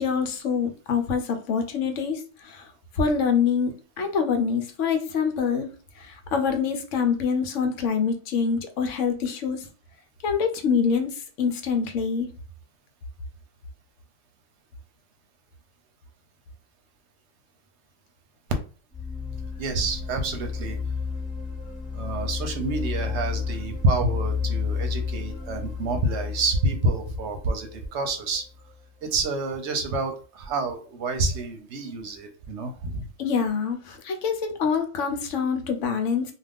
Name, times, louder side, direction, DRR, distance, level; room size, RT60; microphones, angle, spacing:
voice 1, 0.0-2.7 3.0-5.7 6.0-9.6 10.2-12.3 33.2-36.3, left 6 dB, 75° left, 6 dB, 0.9 m, -25 dB
sound 1, 18.9-28.7, left 5 dB, 10° left, 0.9 m, -32 dB
voice 2, 19.6-20.8 21.9-28.4 29.0-33.1, right 2 dB, 70° right, 5 dB, 0.8 m, -28 dB
2.5 x 2.3 x 3.4 m, 0.38 s
omnidirectional pair, 1.3 m